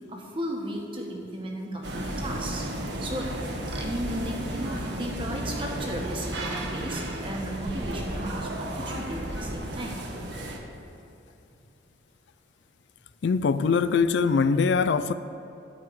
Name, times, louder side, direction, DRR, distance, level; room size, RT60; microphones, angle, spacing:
voice 1, 0.1-2.7 3.0-3.4 3.7-10.0, right 1 dB, 25° right, 0 dB, 1.5 m, -35 dB
sound 1, 1.8-10.6, right 1 dB, 70° right, 1.4 m, -33 dB
voice 2, 13.2-15.1, left 5 dB, 65° left, 13 dB, 0.3 m, -22 dB
14.0 x 4.8 x 8.6 m, 2.7 s
head